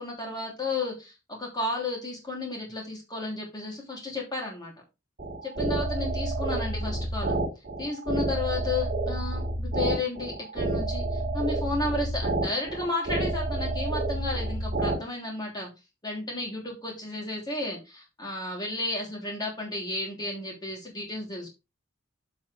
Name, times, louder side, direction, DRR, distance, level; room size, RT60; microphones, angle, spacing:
voice 1, 0.0-4.7 5.4-7.4 7.8-15.7 16.0-21.5, left 2 dB, 20° left, -1 dB, 3.1 m, -33 dB
sound 1, 5.2-15.0, right 2 dB, 40° right, 2.5 m, -29 dB
7.5 x 7.1 x 3.3 m, 0.26 s
head